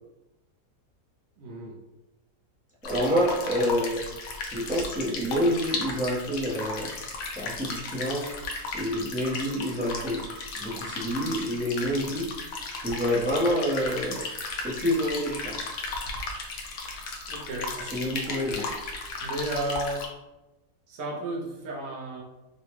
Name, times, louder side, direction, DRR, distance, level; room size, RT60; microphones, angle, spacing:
voice 1, 1.4-1.8 17.3-17.7 19.2-20.1 20.9-22.2, right 1 dB, 65° right, -2 dB, 1.1 m, -33 dB
sound 1, 2.8-20.1, left 3 dB, 65° left, 0.9 m, -35 dB
voice 2, 2.8-4.0 4.5-6.9 7.3-8.3 8.7-10.2 10.6-12.3 12.8-14.2 14.6-15.7 17.8-18.7, equal, 10° right, -9 dB, 0.5 m, -27 dB
3.7 x 2.2 x 3.0 m, 1.0 s
omnidirectional pair, 1.8 m